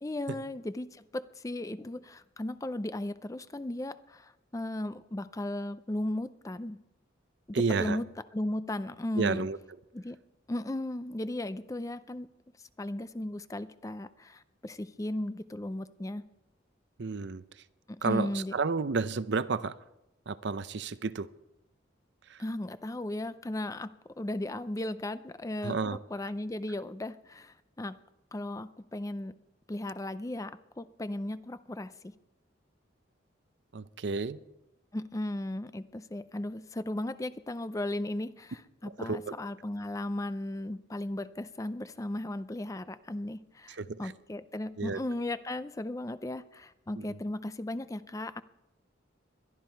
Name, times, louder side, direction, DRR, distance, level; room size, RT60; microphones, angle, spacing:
voice 1, 0.0-6.8 7.5-8.0 8.3-9.5 9.9-10.2 10.5-12.3 12.8-16.3 17.9-18.5 22.4-28.0 28.3-29.3 29.7-32.1 34.9-48.4, left 1 dB, 15° left, 0.4 m, -36 dB
voice 2, 7.5-8.0 9.2-9.6 17.0-17.4 18.0-19.7 20.3-21.3 22.3-22.4 25.6-26.0 33.7-34.4 38.8-39.3 43.8-44.1 44.8-45.0 47.0-47.1, right 4 dB, 60° right, 0.6 m, -31 dB
21.5 x 12.5 x 4.5 m
head